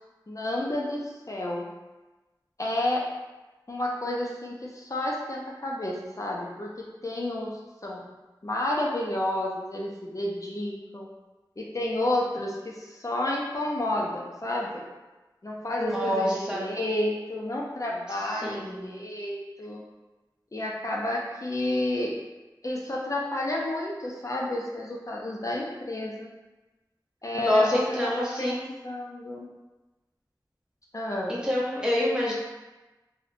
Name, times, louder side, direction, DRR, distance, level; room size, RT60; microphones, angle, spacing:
voice 1, 0.3-1.6 2.6-3.0 3.7-8.0 8.4-11.1 11.6-14.9 15.4-19.8 20.5-22.1 22.6-26.3 27.2-29.5 30.9-31.4, left 1 dB, 45° left, -3 dB, 0.4 m, -31 dB
voice 2, 15.8-16.7 18.3-18.9 27.4-28.7 31.3-32.3, left 1 dB, 10° right, -5 dB, 0.7 m, -26 dB
2.7 x 2.0 x 2.5 m, 1.1 s
wide cardioid pair, 45°, 8 cm